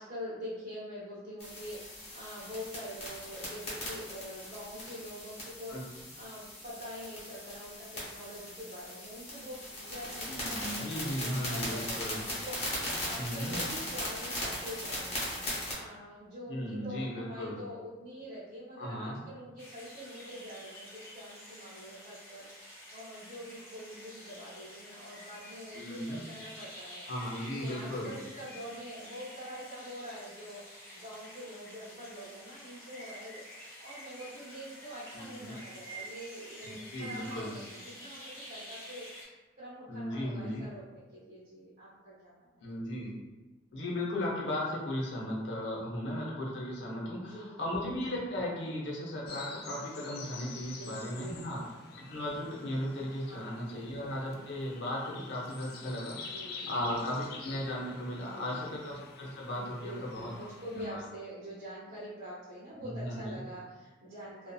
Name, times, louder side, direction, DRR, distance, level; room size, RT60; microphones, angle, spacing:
voice 1, 0.0-27.0 27.5-42.7 47.1-47.7 50.7-51.6 53.1-54.0 56.2-57.2 58.1-58.7 59.5-64.5, equal, 50° right, -11 dB, 0.7 m, -45 dB
sound 1, 1.4-15.7, left 1 dB, 30° left, 1.0 m, -39 dB
voice 2, 10.3-12.2 13.2-13.6 16.5-17.6 18.8-19.2 25.7-26.2 27.1-28.2 35.1-35.6 36.6-37.5 39.9-40.6 42.6-43.2 43.7-51.6 52.0-61.0 62.8-63.4, left 1 dB, 75° left, -4 dB, 0.8 m, -36 dB
sound 2, 19.6-39.2, equal, 15° left, 0.6 m, -49 dB
sound 3, 49.3-60.9, left 4 dB, 55° left, 0.3 m, -48 dB
2.6 x 2.3 x 2.2 m, 1.2 s
head